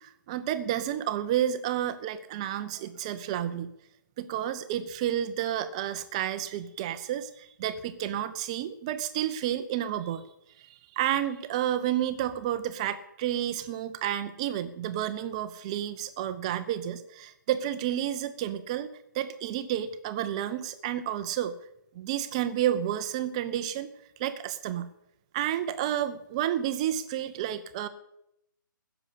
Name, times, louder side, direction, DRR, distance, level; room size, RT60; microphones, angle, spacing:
voice 1, 0.0-3.7 4.2-10.2 10.6-18.9 19.1-21.5 22.0-23.9 24.2-24.9 25.3-27.9, right 11 dB, 20° right, 11 dB, 0.5 m, -30 dB
15.5 x 6.8 x 8.5 m, 0.82 s
figure-of-eight pair, 140°, 11 cm